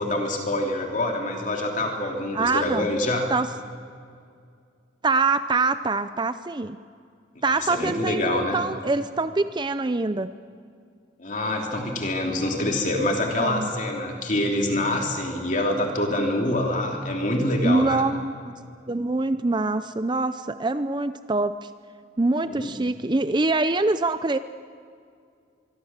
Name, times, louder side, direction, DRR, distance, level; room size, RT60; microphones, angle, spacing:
voice 1, 0.0-3.3 7.5-8.6 11.2-18.0 22.4-22.7, left 1 dB, 40° left, 1 dB, 3.0 m, -26 dB
voice 2, 2.3-2.9 3.3-3.5 5.0-6.8 7.4-10.3 13.4-13.7 17.6-18.5 18.9-21.7 22.2-24.4, right 3 dB, 25° right, 12 dB, 0.5 m, -24 dB
25.0 x 24.0 x 7.4 m, 2.3 s
head